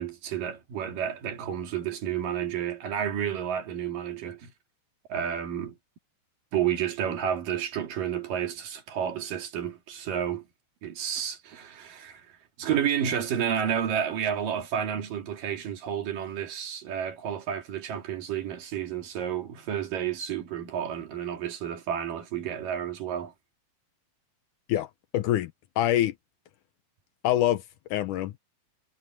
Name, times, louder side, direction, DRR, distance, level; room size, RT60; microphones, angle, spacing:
voice 1, 0.0-4.5 5.1-5.8 6.5-10.4 10.8-12.3 12.6-23.3, right 9 dB, 70° right, 4.0 m, -31 dB
voice 2, 24.7-25.5 25.8-26.1 27.2-27.6 27.9-28.3, left 13 dB, 75° left, 2.1 m, -25 dB
omnidirectional pair, 4.0 m